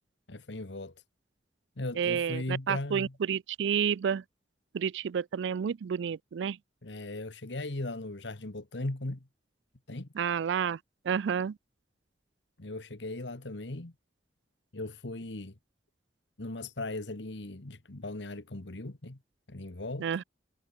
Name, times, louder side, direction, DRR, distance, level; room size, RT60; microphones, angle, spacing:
voice 1, 0.3-0.9 1.8-3.1 6.8-9.3 9.9-10.1 12.6-13.9 14.7-15.5 16.4-19.2 19.5-20.1, left 2 dB, 80° left, 1.6 m, -38 dB
voice 2, 2.0-4.2 4.7-6.6 10.1-10.8 11.0-11.6 20.0-20.2, right 7 dB, 85° right, 0.4 m, -30 dB
head